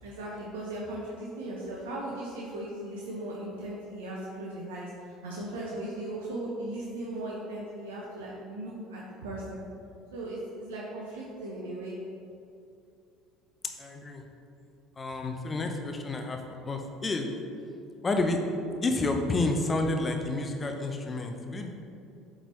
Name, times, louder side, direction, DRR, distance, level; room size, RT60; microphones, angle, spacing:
voice 1, 0.0-4.9 5.2-9.6 10.1-11.9, right 1 dB, 90° right, -4 dB, 0.8 m, -37 dB
voice 2, 13.8-14.2 15.0-17.3 18.0-18.4 18.8-21.7, left 2 dB, 25° left, 4 dB, 0.7 m, -30 dB
8.0 x 3.9 x 3.1 m, 2.6 s
hypercardioid pair, 80°, 0 cm